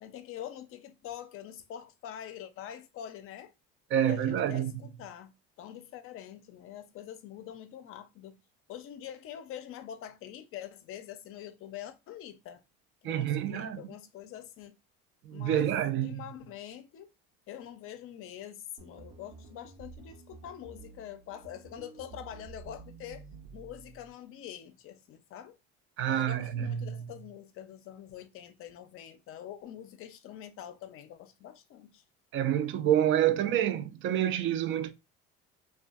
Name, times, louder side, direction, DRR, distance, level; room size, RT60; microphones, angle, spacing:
voice 1, 0.0-3.5 4.1-8.4 8.7-12.6 13.0-14.8 15.3-15.7 16.0-17.1 17.5-23.3 23.5-25.6 26.1-32.0, left 10 dB, 50° left, 0.5 m, -45 dB
voice 2, 3.9-4.7 13.0-13.8 15.3-16.2 26.0-27.1 32.3-34.9, right 11 dB, 45° right, 0.4 m, -28 dB
sound 1, 18.8-24.1, right 5 dB, 70° right, 0.8 m, -51 dB
2.5 x 2.3 x 2.3 m
hypercardioid pair, 85°, 29 cm